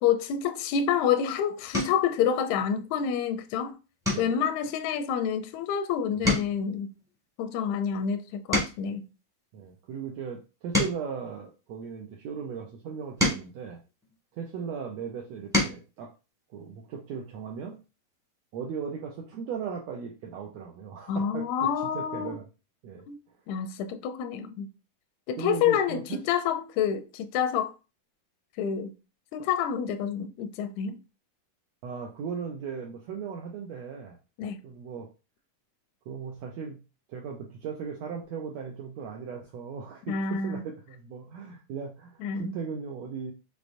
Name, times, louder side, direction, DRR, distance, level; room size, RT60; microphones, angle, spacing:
voice 1, 0.0-3.8 4.2-6.9 7.4-9.1 21.1-22.4 23.1-23.2 23.5-24.7 25.3-27.7 28.6-28.9 29.3-31.0 34.4-34.6 40.1-40.6 42.2-42.6, left 8 dB, 80° left, 1.6 m, -28 dB
sound 1, 0.9-1.1 1.7-2.1 2.6-3.0 3.3-3.5 4.0-5.8 6.1-9.0 9.6-12.1 12.8-14.6 15.2-15.9 17.3-17.4 17.7-17.9, left 1 dB, 5° right, 0.5 m, -32 dB
voice 2, 9.5-13.8 14.3-16.1 16.5-17.8 18.5-21.5 21.9-22.4 22.8-23.0 25.4-26.2 31.8-34.2 34.6-35.1 36.1-36.8 37.1-40.1 40.4-43.3, right 6 dB, 80° right, 1.5 m, -37 dB
6.2 x 3.3 x 2.5 m
omnidirectional pair, 3.8 m